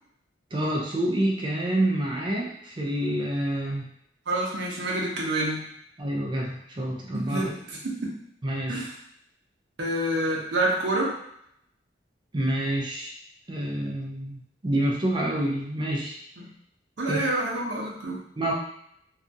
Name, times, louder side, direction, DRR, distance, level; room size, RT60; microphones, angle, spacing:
voice 1, 0.5-3.9 6.0-7.5 8.4-8.9 12.3-13.1 13.5-16.2 17.1-17.2 18.4-18.5, right 1 dB, 25° right, -2 dB, 0.5 m, -27 dB
voice 2, 4.3-5.7 7.1-8.2 8.7-9.0 9.8-11.2 16.4-16.5 17.0-18.2, right 1 dB, 75° right, -3 dB, 0.6 m, -28 dB
2.7 x 2.4 x 2.6 m, 0.71 s
head